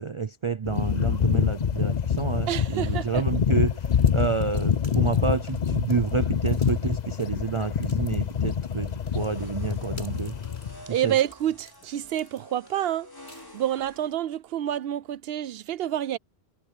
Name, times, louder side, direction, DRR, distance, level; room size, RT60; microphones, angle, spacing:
voice 1, 0.0-10.4 11.0-11.1, right 5 dB, 40° right, 0.5 m, -29 dB
sound 1, 0.6-10.8, left 7 dB, 45° left, 0.8 m, -26 dB
voice 2, 2.5-3.2 10.9-13.1 13.5-16.2, right 11 dB, 70° right, 0.8 m, -28 dB
sound 2, 3.9-14.0, left 1 dB, 75° left, 8.2 m, -54 dB
sound 3, 9.1-14.1, left 1 dB, 20° left, 4.8 m, -49 dB
omnidirectional pair, 1.1 m